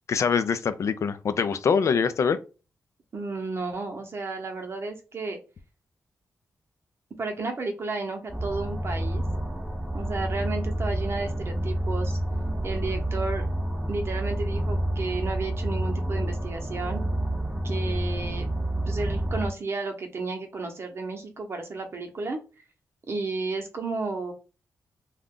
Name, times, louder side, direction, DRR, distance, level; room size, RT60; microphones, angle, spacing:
voice 1, 0.1-2.4, left 6 dB, 60° left, 0.3 m, -24 dB
voice 2, 3.1-5.4 7.2-9.2 9.9-12.2 12.6-13.4 13.9-17.0 17.6-18.5 18.9-22.4 23.1-24.3, right 3 dB, 45° right, 0.8 m, -32 dB
sound 1, 8.3-19.5, right 1 dB, 10° right, 0.7 m, -29 dB
2.5 x 2.3 x 3.5 m
wide cardioid pair, 100°, 6 cm